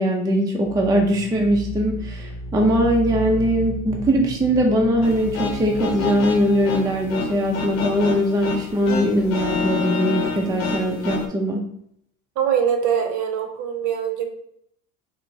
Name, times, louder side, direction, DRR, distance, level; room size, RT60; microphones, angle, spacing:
voice 1, 0.0-11.6, equal, 10° right, 0 dB, 0.5 m, -21 dB
sound 1, 0.6-9.3, equal, 40° left, 0.7 m, -34 dB
sound 2, 5.0-11.3, left 4 dB, 75° left, 0.8 m, -28 dB
voice 2, 12.4-14.3, right 8 dB, 45° right, 5 dB, 0.8 m, -23 dB
5.2 x 2.1 x 2.7 m, 0.70 s
hypercardioid pair, 85°, 42 cm